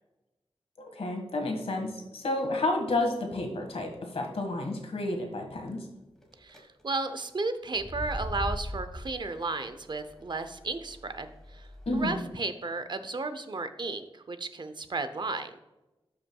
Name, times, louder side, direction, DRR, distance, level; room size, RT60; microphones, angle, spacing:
voice 1, 0.9-5.9 11.8-12.2, left 2 dB, 85° left, 2 dB, 1.7 m, -31 dB
sound 1, 6.2-6.6 7.7-12.1, equal, 5° left, 1.5 m, -40 dB
voice 2, 6.4-11.7 11.9-15.6, right 3 dB, 50° right, 10 dB, 0.7 m, -34 dB
12.5 x 5.7 x 2.3 m, 1.0 s
wide cardioid pair, 85°, 10 cm